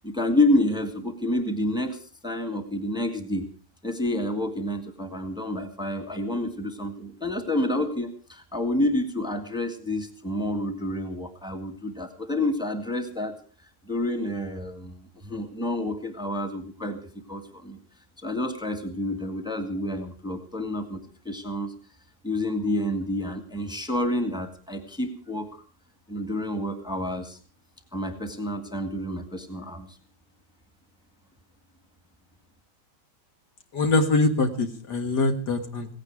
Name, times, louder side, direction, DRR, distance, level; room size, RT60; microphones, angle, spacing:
voice 1, 0.0-3.5 3.8-13.4 13.9-17.0 17.3-17.8 18.2-21.0 21.3-21.7 22.2-25.6 26.1-27.4 27.9-30.0, left 1 dB, ahead, 6 dB, 1.9 m, -29 dB
voice 2, 33.7-35.9, left 2 dB, 65° left, 6 dB, 2.3 m, -23 dB
17.0 x 16.0 x 4.8 m, 0.38 s
omnidirectional pair, 2.0 m